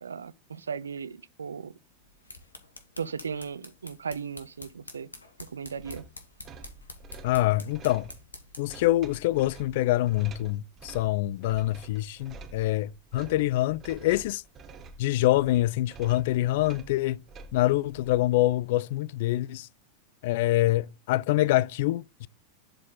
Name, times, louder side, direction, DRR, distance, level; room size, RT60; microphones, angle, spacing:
voice 1, 0.0-1.7 3.0-5.1 5.5-6.0, right 6 dB, 70° right, 0.5 m, -36 dB
sound 1, 2.0-8.8, left 2 dB, 75° left, 1.4 m, -48 dB
sound 2, 5.8-18.2, right 3 dB, 25° right, 1.3 m, -48 dB
voice 2, 7.2-8.1 8.6-14.4 15.0-17.2 17.5-19.7 20.2-22.3, left 16 dB, 50° left, 0.3 m, -25 dB
11.0 x 4.2 x 3.8 m
figure-of-eight pair, 90°, 0 cm